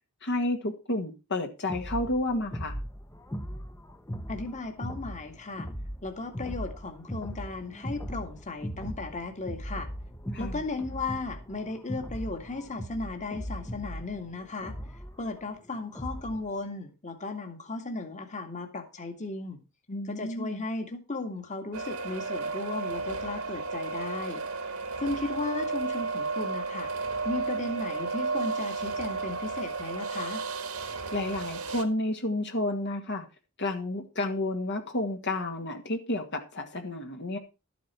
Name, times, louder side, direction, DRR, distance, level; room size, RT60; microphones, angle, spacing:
voice 1, 0.2-2.8 10.3-10.6 19.9-20.6 31.1-33.3 33.6-37.4, left 2 dB, 55° left, 2.0 m, -31 dB
sound 1, 1.7-16.5, equal, 15° left, 1.0 m, -39 dB
voice 2, 4.3-5.7 6.0-9.9 10.4-14.7 15.2-19.6 20.0-24.4 25.0-26.9 27.2-30.4, left 3 dB, 35° left, 2.1 m, -36 dB
sound 2, 21.7-31.8, right 4 dB, 75° right, 1.9 m, -33 dB
13.0 x 9.3 x 4.5 m
head